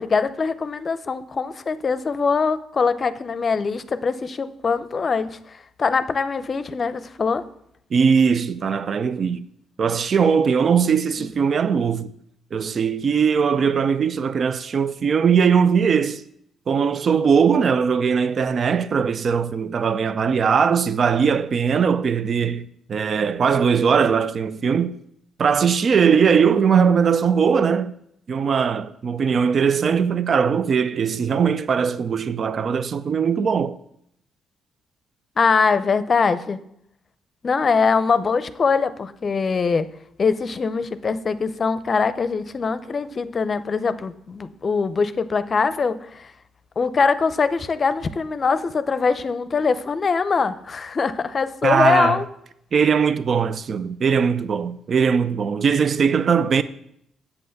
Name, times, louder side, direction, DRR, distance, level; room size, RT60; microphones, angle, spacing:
voice 1, 0.0-7.4 35.4-36.6 37.4-39.9 40.2-46.3 46.8-52.2, left 5 dB, 40° left, 0.6 m, -22 dB
voice 2, 7.9-9.5 9.8-12.1 12.5-16.2 16.7-25.0 25.4-27.9 28.3-33.8 51.6-52.2 52.7-56.6, right 6 dB, 50° right, 0.5 m, -20 dB
8.2 x 5.5 x 7.8 m
cardioid pair, 90°, 0 cm